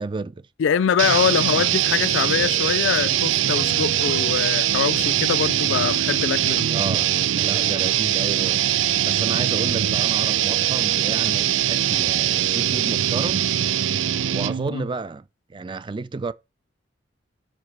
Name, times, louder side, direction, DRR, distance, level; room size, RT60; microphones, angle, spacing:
voice 1, 0.0-0.5 1.3-1.6 6.7-13.5 14.3-16.3, right 3 dB, 25° right, 0.4 m, -32 dB
voice 2, 0.6-6.7 14.7-14.9, left 7 dB, 75° left, 0.3 m, -23 dB
sound 1, 1.0-14.7, right 11 dB, 85° right, 0.4 m, -22 dB
5.8 x 5.1 x 6.0 m
head